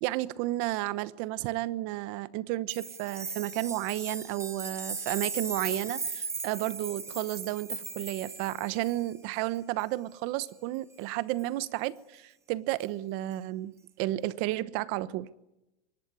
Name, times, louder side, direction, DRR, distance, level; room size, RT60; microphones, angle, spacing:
voice 1, 0.0-15.3, right 16 dB, 40° right, 1.0 m, -32 dB
sound 1, 2.7-9.1 11.4-11.5, right 4 dB, 10° right, 1.0 m, -38 dB
23.5 x 19.5 x 9.6 m
supercardioid pair, 160°, 34 cm